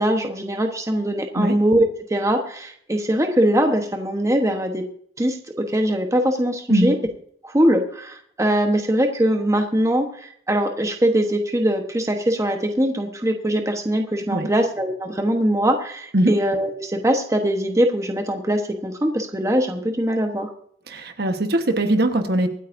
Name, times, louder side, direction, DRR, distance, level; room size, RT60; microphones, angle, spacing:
voice 1, 0.0-4.8 5.2-7.0 7.4-20.5, right 1 dB, 20° right, 4 dB, 1.2 m, -22 dB
voice 2, 20.9-22.5, right 1 dB, 65° right, 6 dB, 1.3 m, -21 dB
24.5 x 9.0 x 2.7 m, 0.64 s
head